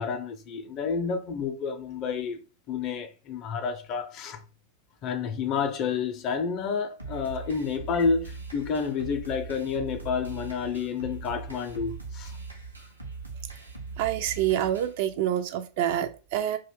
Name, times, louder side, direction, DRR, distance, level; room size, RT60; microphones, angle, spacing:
voice 1, 0.0-2.4 2.7-4.4 5.0-12.3, left 5 dB, 35° left, 0.5 m, -30 dB
sound 1, 7.0-15.0, right 4 dB, 85° right, 0.7 m, -40 dB
voice 2, 14.0-16.6, right 11 dB, 50° right, 0.3 m, -27 dB
2.5 x 2.2 x 3.4 m
figure-of-eight pair, 90°, 0 cm